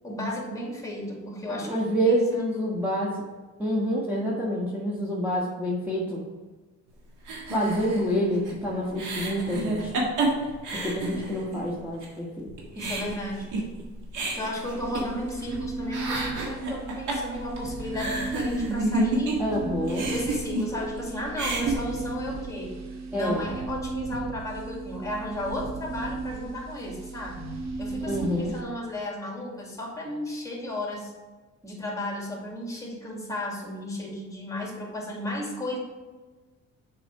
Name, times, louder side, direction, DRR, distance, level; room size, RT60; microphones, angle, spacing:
voice 1, 0.0-1.8 2.3-2.6 11.2-11.3 12.7-13.5 14.3-19.4 20.1-22.8 23.1-31.1 31.6-35.8, left 1 dB, 10° left, -1 dB, 2.4 m, -34 dB
voice 2, 1.6-3.2 3.6-6.2 7.5-9.9 10.7-12.5 19.4-20.1 23.1-23.4 28.1-28.5, equal, 5° right, -6 dB, 1.5 m, -27 dB
sound 1, 7.3-11.7 12.0-12.1 12.4-15.6 15.8-19.6 19.8-21.0 21.3-21.7, right 2 dB, 85° right, 1.7 m, -30 dB
sound 2, 14.7-28.6, right 3 dB, 60° right, 1.0 m, -36 dB
6.9 x 5.0 x 4.8 m, 1.3 s
cardioid pair, 90°, 30 cm